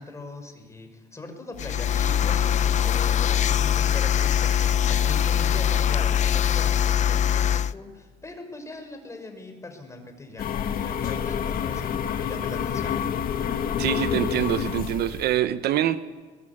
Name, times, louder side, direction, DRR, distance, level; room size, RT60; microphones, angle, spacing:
voice 1, 0.0-13.0, left 2 dB, 15° left, 6.0 m, -41 dB
sound 1, 1.6-7.7, left 9 dB, 45° left, 0.6 m, -22 dB
sound 2, 10.4-15.4, left 8 dB, 60° left, 1.8 m, -28 dB
voice 2, 13.8-16.0, right 12 dB, 75° right, 1.0 m, -25 dB
22.0 x 21.0 x 8.7 m
cardioid pair, 110°, 17 cm